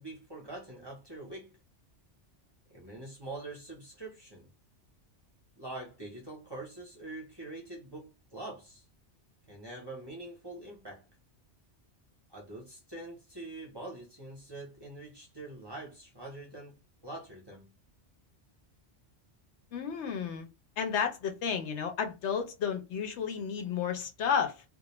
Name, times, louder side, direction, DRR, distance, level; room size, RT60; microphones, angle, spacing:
voice 1, 0.0-1.5 2.7-4.5 5.6-8.8 9.5-11.0 12.3-16.8 17.0-17.7, right 2 dB, 25° right, 0.6 m, -44 dB
voice 2, 19.7-20.5 20.8-24.6, left 7 dB, 75° left, 0.9 m, -32 dB
2.3 x 2.1 x 2.9 m
omnidirectional pair, 1.2 m